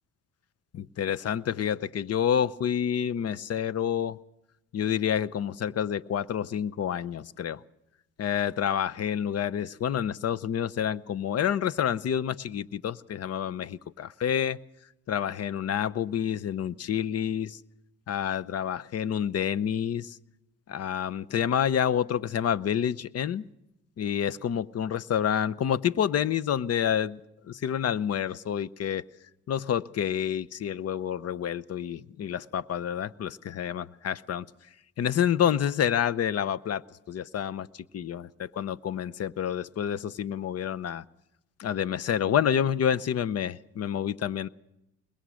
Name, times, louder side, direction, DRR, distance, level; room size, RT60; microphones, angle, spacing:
voice 1, 0.7-4.2 4.7-7.6 8.2-14.6 15.1-17.6 18.1-20.2 20.7-23.4 24.0-27.2 27.5-29.0 29.5-34.5 35.0-41.0 41.6-44.5, left 9 dB, 55° left, 0.8 m, -28 dB
21.5 x 21.0 x 6.3 m
cardioid pair, 90°, 30 cm